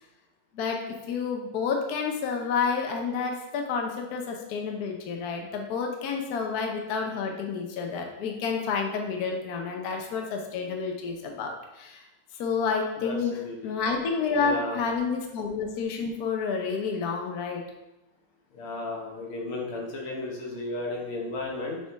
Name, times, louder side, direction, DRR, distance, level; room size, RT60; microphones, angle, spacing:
voice 1, 0.5-12.0 12.4-13.4 13.6-17.6, left 5 dB, 60° left, 2 dB, 1.1 m, -29 dB
voice 2, 14.3-14.8 18.5-21.8, left 2 dB, 85° left, -1 dB, 2.1 m, -34 dB
7.1 x 4.5 x 3.4 m, 0.95 s
omnidirectional pair, 2.3 m